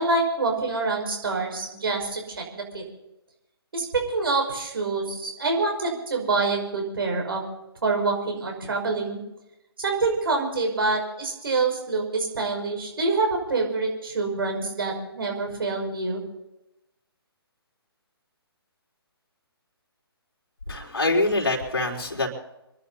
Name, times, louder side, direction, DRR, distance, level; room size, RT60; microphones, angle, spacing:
voice 1, 0.0-2.8 3.7-7.4 7.8-9.2 9.8-16.2, right 3 dB, 60° right, 2 dB, 5.8 m, -26 dB
voice 2, 20.7-22.3, left 2 dB, 65° left, 1 dB, 4.1 m, -24 dB
27.5 x 11.5 x 4.1 m, 0.91 s
figure-of-eight pair, 135°, 13 cm